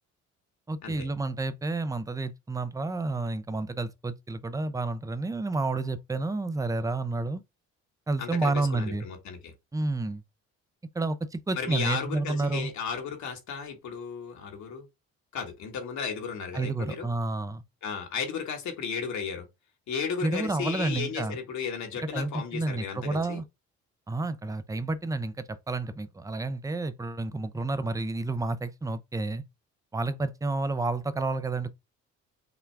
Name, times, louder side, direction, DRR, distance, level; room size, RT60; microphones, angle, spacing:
voice 1, 0.7-7.4 8.1-9.1 9.7-10.2 10.9-12.7 16.5-17.6 20.2-21.4 22.1-23.4 24.1-29.4 29.9-31.7, right 3 dB, 10° right, 0.5 m, -30 dB
voice 2, 8.2-9.5 11.5-14.9 15.3-17.1 17.8-19.4 19.9-23.4, left 6 dB, 65° left, 1.4 m, -34 dB
5.9 x 2.3 x 3.3 m
supercardioid pair, 75°, 31 cm